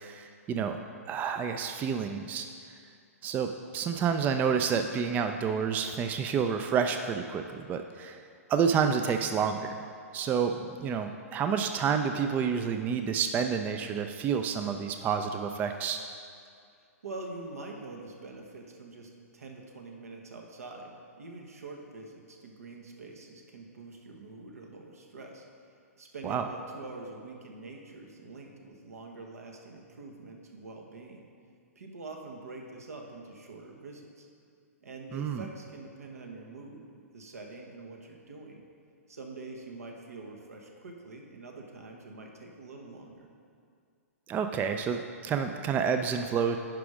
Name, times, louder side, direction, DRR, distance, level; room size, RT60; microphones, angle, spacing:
voice 1, 0.0-2.5 3.2-8.2 8.5-9.8 10.1-16.0 26.2-26.4 35.1-35.4 44.3-46.6, right 6 dB, 20° right, 7 dB, 0.4 m, -29 dB
voice 2, 17.0-25.4 26.0-31.3 31.7-34.3 34.8-36.9 37.1-38.6 39.1-43.3, right 3 dB, 75° right, 1 dB, 1.4 m, -45 dB
10.0 x 5.1 x 5.0 m, 2.3 s
hypercardioid pair, 115°, 8 cm